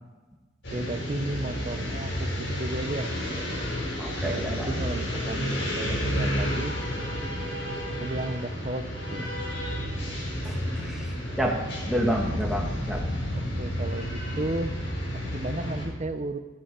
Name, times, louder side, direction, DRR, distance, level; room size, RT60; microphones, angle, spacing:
sound 1, 0.6-15.9, equal, 85° left, 5.0 m, -31 dB
voice 1, 0.7-3.1 4.2-6.7 7.9-8.9 9.1-9.3 13.3-14.8 15.1-16.4, right 2 dB, 40° right, 9 dB, 0.8 m, -34 dB
voice 2, 4.0-4.7 10.4-11.6 11.9-13.0, equal, 5° right, -2 dB, 1.7 m, -29 dB
13.0 x 9.3 x 6.7 m, 1.2 s
head